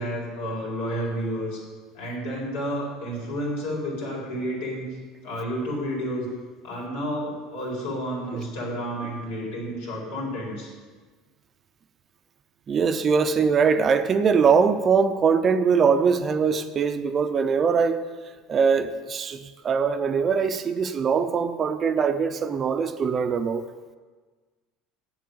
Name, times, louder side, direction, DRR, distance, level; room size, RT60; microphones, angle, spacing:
voice 1, 0.0-1.6 1.9-4.9 5.2-6.3 6.6-10.7, equal, 85° left, -3 dB, 4.3 m, -30 dB
voice 2, 12.7-18.0 18.5-23.6, right 6 dB, 30° right, 10 dB, 0.6 m, -22 dB
8.0 x 7.6 x 8.6 m, 1.4 s
cardioid pair, 135°, 0 cm